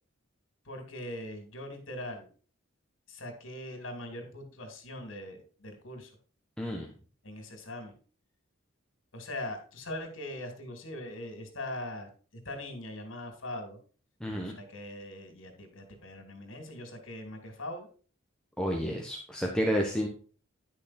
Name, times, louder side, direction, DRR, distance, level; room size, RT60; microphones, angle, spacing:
voice 1, 0.7-2.3 3.1-6.1 7.2-7.9 9.1-12.1 12.4-13.8 14.4-17.9, left 1 dB, 70° left, 5 dB, 2.9 m, -41 dB
voice 2, 6.6-6.9 14.2-14.5 18.6-20.1, equal, 5° left, 0 dB, 1.1 m, -30 dB
11.0 x 6.3 x 4.3 m, 0.39 s
head